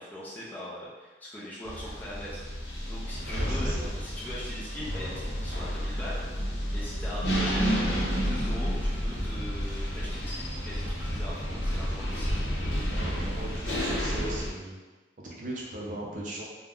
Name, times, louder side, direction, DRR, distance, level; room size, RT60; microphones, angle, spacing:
voice 1, 0.0-3.8 4.0-12.4, left 1 dB, 10° left, -8 dB, 0.4 m, -41 dB
sound 1, 1.6-14.5, equal, 80° left, 0.7 m, -30 dB
voice 2, 3.2-3.9 12.7-14.8 15.2-16.4, right 1 dB, 45° right, -3 dB, 0.5 m, -38 dB
2.4 x 2.1 x 3.5 m, 1.2 s
head